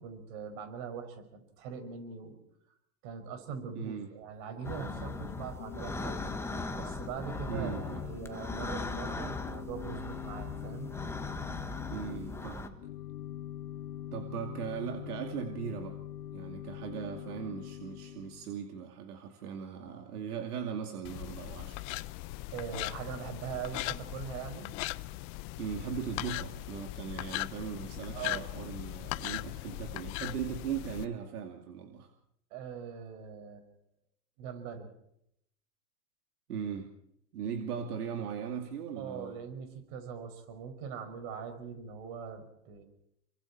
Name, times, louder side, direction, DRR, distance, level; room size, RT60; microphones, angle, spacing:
voice 1, 0.0-2.4 3.0-6.2 6.7-10.9 22.5-24.7 28.1-28.5 32.5-33.7 34.4-34.9 39.0-42.8, right 7 dB, 50° right, 6 dB, 5.9 m, -42 dB
voice 2, 3.7-4.1 7.5-8.0 11.9-12.8 14.1-16.0 16.3-21.8 25.6-32.1 36.5-36.9 37.3-39.3, right 7 dB, 75° right, 4 dB, 2.6 m, -39 dB
Organ / Church bell, 4.5-18.6, left 12 dB, 80° left, 1.8 m, -44 dB
sound 1, 4.6-12.7, left 2 dB, 5° left, 1.7 m, -39 dB
sound 2, 21.0-31.1, left 19 dB, 35° left, 0.7 m, -39 dB
28.5 x 24.0 x 4.4 m, 0.76 s
hypercardioid pair, 125°, 45 cm